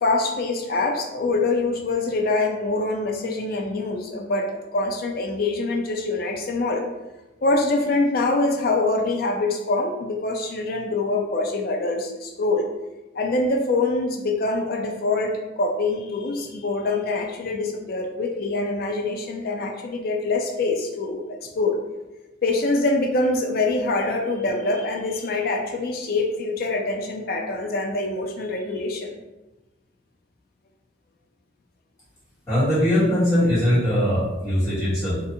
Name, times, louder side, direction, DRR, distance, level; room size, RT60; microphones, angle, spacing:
voice 1, 0.0-6.8 7.4-12.7 13.1-21.8 22.4-29.1, left 2 dB, 50° left, 3 dB, 0.4 m, -24 dB
voice 2, 32.5-35.2, equal, 15° left, -12 dB, 1.3 m, -21 dB
2.7 x 2.5 x 2.6 m, 1.1 s
head